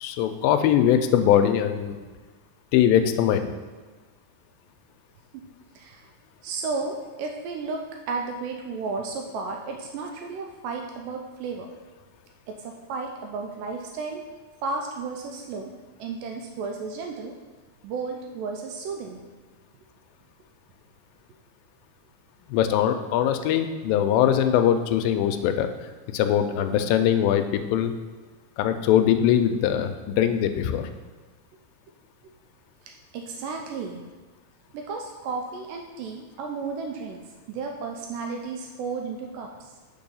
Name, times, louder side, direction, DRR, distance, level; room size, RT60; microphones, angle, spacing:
voice 1, 0.0-2.0 2.7-3.5 22.5-25.7 26.1-27.9 28.6-30.9, left 10 dB, 85° left, 7 dB, 2.2 m, -21 dB
voice 2, 5.8-6.1 6.4-11.7 12.5-14.3 14.6-15.7 16.0-17.3 17.8-19.2 33.1-34.0 34.7-37.2 37.5-39.7, right 4 dB, 80° right, 2 dB, 2.0 m, -33 dB
5.4 x 4.7 x 5.4 m, 1.3 s
omnidirectional pair, 4.1 m